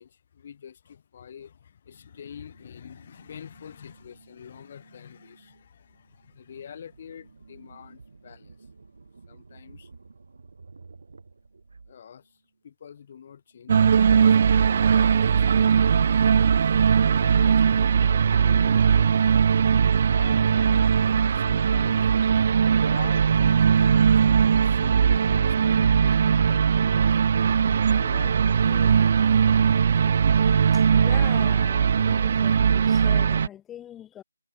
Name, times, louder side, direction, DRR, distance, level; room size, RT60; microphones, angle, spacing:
voice 1, 0.0-8.7 9.3-9.9 11.9-12.4 12.6-19.1 20.2-21.1 21.3-27.0 27.9-29.2, left 8 dB, 35° left, 2.4 m, -46 dB
sound 1, 1.9-12.6 12.9-18.1, right 4 dB, 65° right, 7.9 m, -54 dB
sound 2, 13.7-33.5, right 7 dB, 40° right, 0.3 m, -20 dB
voice 2, 30.7-34.2, left 11 dB, 10° left, 2.3 m, -43 dB
figure-of-eight pair, 165°, 0 cm